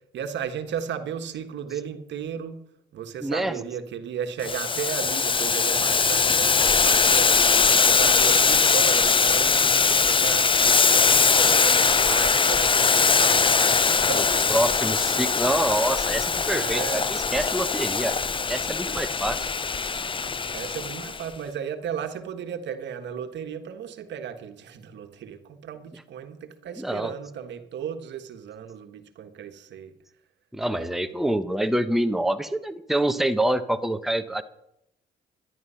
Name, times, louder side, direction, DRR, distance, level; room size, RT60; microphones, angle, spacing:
voice 1, 0.1-2.6 2.9-14.5 15.2-15.3 16.5-17.1 20.5-29.9 30.7-30.9, right 8 dB, 70° right, 8 dB, 1.3 m, -35 dB
voice 2, 3.2-3.6 14.5-18.1 18.5-19.5 26.8-27.1 30.5-34.4, right 1 dB, ahead, 9 dB, 0.9 m, -26 dB
Boiling, 4.4-21.2, left 5 dB, 25° left, 0.6 m, -21 dB
12.5 x 10.5 x 5.6 m, 0.78 s
supercardioid pair, 70°, 19 cm